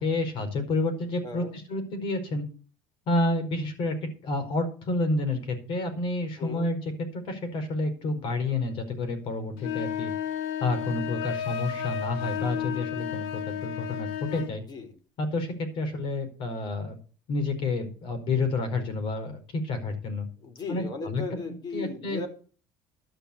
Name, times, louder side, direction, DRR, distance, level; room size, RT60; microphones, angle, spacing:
voice 1, 0.0-2.4 3.1-3.9 4.2-10.1 10.6-14.6 15.2-17.0 17.3-20.3 20.7-21.2 21.5-22.2, left 2 dB, 60° left, 7 dB, 4.6 m, -29 dB
voice 2, 1.2-1.5 6.4-6.7 14.7-14.9 20.4-22.3, left 4 dB, 45° left, 6 dB, 4.4 m, -36 dB
sound 1, 9.6-14.5, left 10 dB, 80° left, 1.5 m, -32 dB
12.0 x 5.9 x 8.4 m, 0.39 s
supercardioid pair, 85°, 10 cm